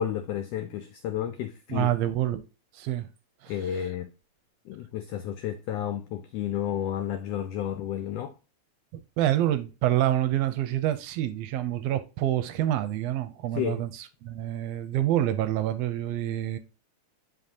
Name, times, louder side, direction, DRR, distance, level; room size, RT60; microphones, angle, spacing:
voice 1, 0.0-1.9 3.5-4.1 4.7-8.3 13.5-13.8, left 10 dB, 80° left, 1.4 m, -31 dB
voice 2, 1.7-2.4 2.7-3.1 3.4-3.5 9.2-16.6, right 12 dB, 80° right, 1.5 m, -27 dB
9.3 x 3.9 x 2.7 m
omnidirectional pair, 3.3 m